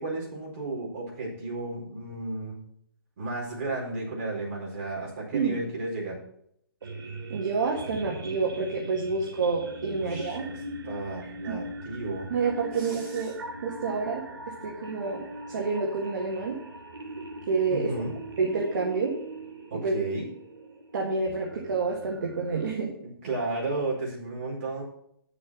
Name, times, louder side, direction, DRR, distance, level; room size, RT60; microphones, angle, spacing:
voice 1, 0.0-2.6 3.2-6.2 10.0-10.6 10.8-12.3 12.7-13.3 17.7-18.1 19.7-20.3 23.0-24.8, right 2 dB, 35° right, -4 dB, 4.4 m, -33 dB
sound 1, 6.8-22.7, right 1 dB, 80° right, 2.7 m, -41 dB
voice 2, 7.3-10.4 11.5-11.6 12.3-13.3 13.6-14.2 14.6-16.6 17.2-17.9 18.4-19.1 19.7-20.0 20.9-22.9, right 4 dB, 50° right, -1 dB, 1.8 m, -28 dB
9.0 x 7.0 x 6.2 m, 0.70 s
hypercardioid pair, 175°, 12 cm